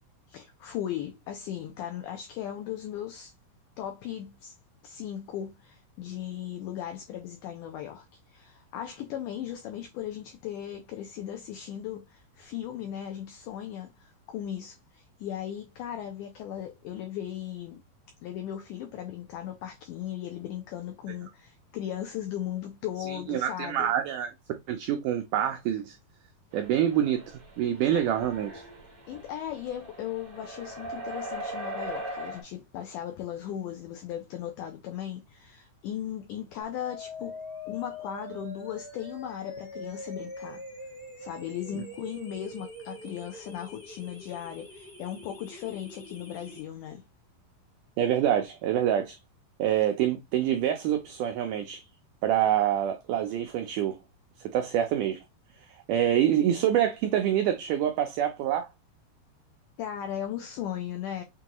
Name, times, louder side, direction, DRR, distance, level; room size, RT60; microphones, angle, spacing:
voice 1, 0.3-3.3 3.8-4.5 4.8-17.8 18.2-23.9 29.1-37.4 37.7-40.6 41.2-47.0 59.8-61.2, left 10 dB, 85° left, 1.8 m, -37 dB
voice 2, 23.1-24.3 24.7-26.0 26.5-27.2 27.6-28.6 48.0-49.2 49.6-51.8 52.2-54.0 54.4-55.2 55.7-58.7, right 10 dB, 85° right, 1.8 m, -26 dB
sound 1, 26.5-32.4, right 1 dB, 55° right, 0.8 m, -40 dB
sound 2, 36.6-46.6, left 1 dB, 35° left, 0.9 m, -44 dB
6.1 x 2.3 x 2.9 m
omnidirectional pair, 4.3 m